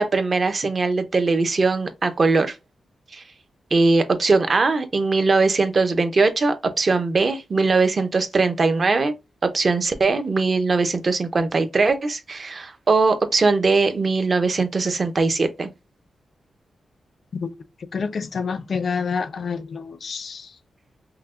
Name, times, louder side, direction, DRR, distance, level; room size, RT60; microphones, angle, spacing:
voice 1, 0.0-2.5 3.1-3.2 3.7-9.1 9.5-15.7, right 3 dB, 30° right, 0.6 m, -20 dB
voice 2, 17.9-20.4, left 5 dB, 45° left, 0.4 m, -27 dB
5.6 x 2.1 x 2.4 m
wide cardioid pair, 180°, 0 cm